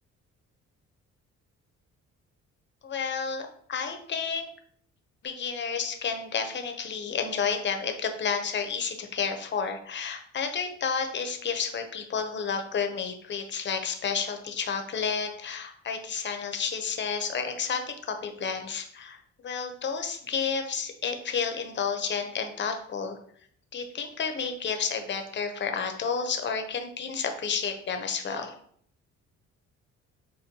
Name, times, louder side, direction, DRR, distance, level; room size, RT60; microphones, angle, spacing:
voice 1, 2.8-4.5 5.2-23.2 23.7-28.5, left 6 dB, 40° left, 5 dB, 0.6 m, -31 dB
5.1 x 2.2 x 2.7 m, 0.63 s
cardioid pair, 90°, 30 cm